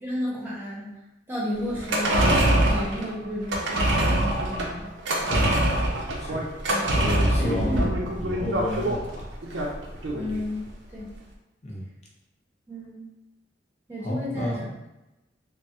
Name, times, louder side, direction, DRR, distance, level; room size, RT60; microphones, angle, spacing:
voice 1, 0.0-0.9 1.3-4.9 6.7-6.9 7.4-7.9 10.1-11.1 12.7-13.0 13.9-14.6, equal, 10° right, -8 dB, 0.8 m, -32 dB
sound 1, 1.7-10.4 10.7-10.8, right 1 dB, 75° right, 0.5 m, -24 dB
voice 2, 5.3-5.6 6.2-6.5 6.9-7.9 8.2-9.3 11.6-11.8 14.0-14.7, left 1 dB, 40° left, -3 dB, 0.7 m, -31 dB
3.2 x 2.1 x 2.6 m, 0.96 s
head